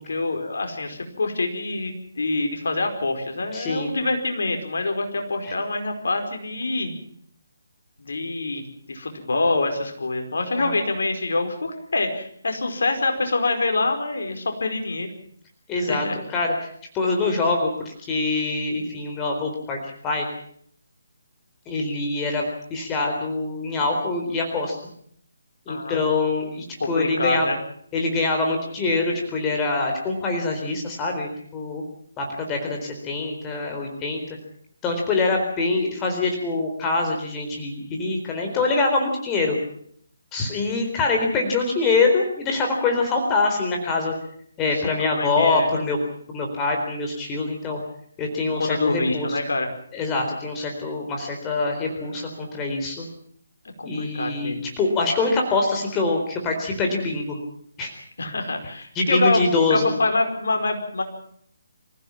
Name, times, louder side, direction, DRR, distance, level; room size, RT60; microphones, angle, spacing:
voice 1, 0.1-6.9 8.0-15.1 15.7-16.2 25.7-26.0 26.8-27.6 44.7-45.7 48.6-49.7 51.9-52.0 53.8-54.7 58.2-61.0, left 2 dB, 60° left, 5 dB, 5.0 m, -26 dB
voice 2, 3.5-3.9 5.4-5.5 10.6-10.8 15.7-16.7 16.9-19.8 20.0-20.3 21.7-24.8 25.7-27.5 27.9-31.8 32.2-34.4 34.8-39.6 40.3-44.1 44.6-46.0 46.3-47.8 48.2-49.4 49.9-53.1 53.8-57.4 57.8-57.9 58.9-59.9, left 3 dB, 15° left, 2 dB, 4.1 m, -24 dB
27.0 x 15.5 x 7.4 m, 0.65 s
figure-of-eight pair, 145°, 0 cm